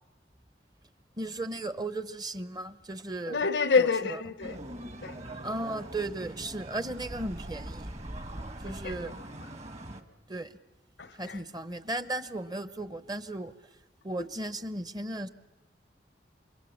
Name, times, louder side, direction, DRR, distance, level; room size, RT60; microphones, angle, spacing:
voice 1, 1.2-3.4 3.8-3.9 5.4-7.9 8.6-9.2 10.3-10.6 11.1-13.5 14.0-15.3, right 2 dB, 25° right, 0.8 m, -35 dB
voice 2, 3.3-4.6 5.0-5.2 8.6-9.5 11.0-11.4 14.2-14.3, left 5 dB, 75° left, 0.8 m, -29 dB
sound 1, 4.4-10.0, right 1 dB, 40° right, 1.4 m, -41 dB
28.5 x 25.5 x 7.2 m
head